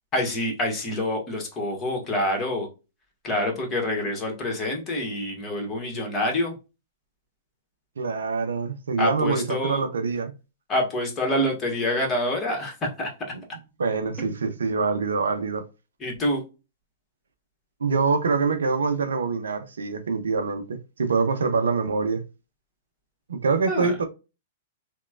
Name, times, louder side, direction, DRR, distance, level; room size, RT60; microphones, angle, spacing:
voice 1, 0.1-2.7 3.2-6.5 9.0-9.9 10.7-13.1 16.0-16.4 23.7-23.9, left 1 dB, 25° left, 1.2 m, -26 dB
voice 2, 8.0-10.3 13.8-15.6 17.8-22.2 23.3-24.0, right 4 dB, 80° right, 0.5 m, -25 dB
2.9 x 2.1 x 2.3 m
hypercardioid pair, 115°, 0 cm